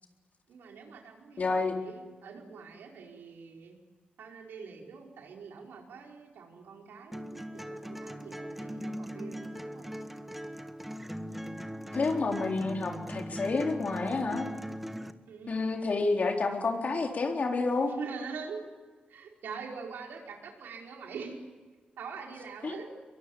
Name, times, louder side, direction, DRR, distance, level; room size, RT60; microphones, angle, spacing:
voice 1, 0.5-1.5 1.8-3.7 4.2-9.9 15.3-15.7 18.0-18.6 19.1-21.4 22.0-22.9, right 5 dB, 85° right, 1 dB, 4.9 m, -44 dB
voice 2, 1.4-1.8 11.9-14.5 15.5-17.9 22.6-22.7, left 3 dB, 50° left, 3 dB, 3.9 m, -29 dB
sound 1, 7.1-15.1, equal, 5° right, 1.7 m, -39 dB
23.5 x 22.5 x 9.4 m, 1.4 s
cardioid pair, 80°, 3 cm